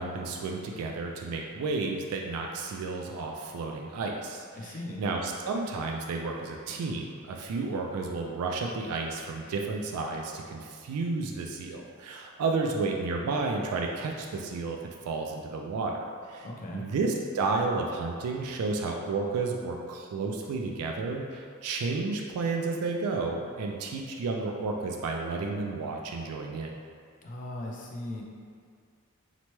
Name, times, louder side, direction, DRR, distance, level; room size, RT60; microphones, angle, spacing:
voice 1, 0.0-14.8 15.1-16.5 16.7-26.8, right 3 dB, 85° right, 1 dB, 0.3 m, -32 dB
voice 2, 4.6-5.0 16.4-16.9 27.2-28.2, left 1 dB, 35° left, -2 dB, 0.4 m, -38 dB
2.9 x 2.1 x 3.0 m, 2.2 s
head